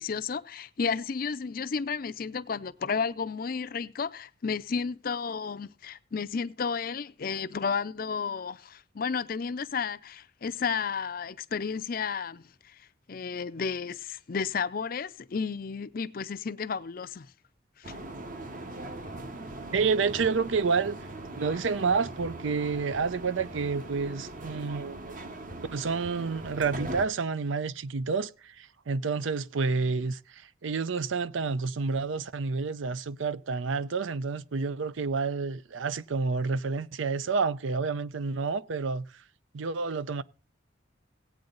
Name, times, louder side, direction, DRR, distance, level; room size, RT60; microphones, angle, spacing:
voice 1, 0.0-12.8 13.1-17.3 17.8-18.0, left 5 dB, 45° left, 0.5 m, -32 dB
sound 1, 17.8-27.1, right 2 dB, 45° right, 1.0 m, -40 dB
voice 2, 19.7-21.0 21.3-25.2 25.7-39.1 39.5-40.2, right 4 dB, 75° right, 0.6 m, -29 dB
17.0 x 8.6 x 3.9 m
head